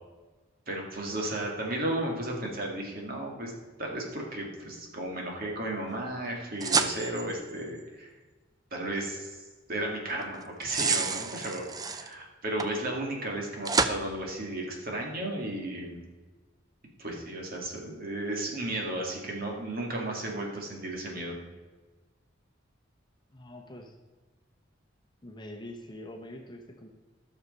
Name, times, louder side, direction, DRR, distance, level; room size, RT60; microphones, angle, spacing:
voice 1, 0.7-3.5 3.8-8.1 8.7-9.4 9.7-16.0 17.0-21.3, right 1 dB, 50° right, 0 dB, 2.2 m, -34 dB
sound 1, 6.6-7.6 10.4-12.1 12.6-12.7 13.6-14.0, right 4 dB, 20° right, 0.5 m, -28 dB
voice 2, 23.3-23.9 25.2-26.9, left 1 dB, 25° left, 2 dB, 1.0 m, -44 dB
13.0 x 6.6 x 5.4 m, 1.3 s
head